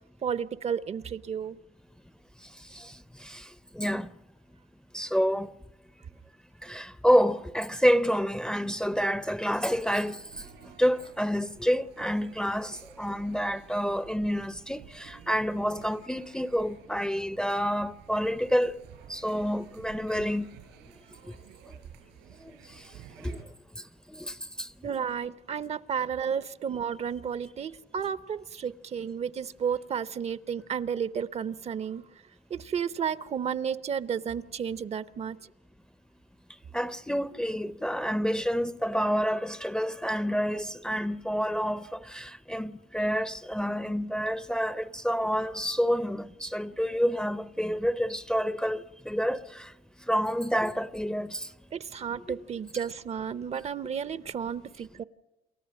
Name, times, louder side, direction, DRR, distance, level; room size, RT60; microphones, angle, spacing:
voice 1, 0.2-1.6 24.8-32.0 32.5-35.4 51.7-55.0, right 7 dB, 40° right, 0.7 m, -32 dB
voice 2, 3.7-4.1 4.9-5.5 6.6-10.2 10.6-18.8 19.1-20.5 23.2-23.4 24.1-24.7 36.7-49.7 50.1-51.5 52.3-52.4, equal, 5° left, 0.6 m, -28 dB
sound 1, 9.4-23.4, right 10 dB, 90° right, 4.1 m, -52 dB
28.5 x 13.5 x 7.6 m
cardioid pair, 110°, 17 cm